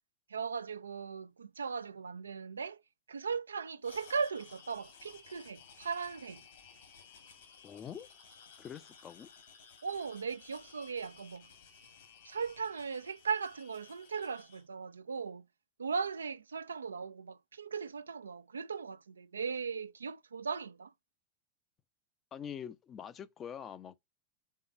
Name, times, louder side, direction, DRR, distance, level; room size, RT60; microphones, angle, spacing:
voice 1, 0.3-2.8 3.1-6.4 9.8-11.5 12.2-15.5 15.8-20.9, right 5 dB, 75° right, 0.3 m, -38 dB
sound 1, 3.8-14.6, left 6 dB, 60° left, 2.0 m, -57 dB
voice 2, 7.6-8.1 8.6-9.3 22.3-24.0, left 8 dB, 25° left, 0.5 m, -44 dB
5.5 x 3.8 x 5.8 m
figure-of-eight pair, 90°, 0 cm